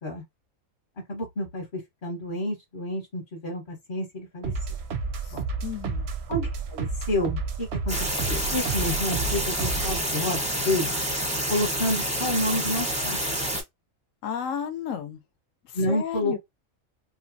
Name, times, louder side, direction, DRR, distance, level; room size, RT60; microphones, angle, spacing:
voice 1, 1.1-4.5 5.3-5.4 6.3-10.9 11.5-13.2 15.7-16.4, left 1 dB, 45° left, 1.1 m, -29 dB
sound 1, 4.4-10.1, right 4 dB, 65° right, 0.7 m, -31 dB
voice 2, 5.2-6.1 14.2-15.2 15.6-16.4, left 8 dB, 70° left, 0.9 m, -33 dB
sound 2, 7.9-13.6, right 1 dB, 10° right, 0.6 m, -28 dB
3.1 x 2.1 x 2.5 m
omnidirectional pair, 1.5 m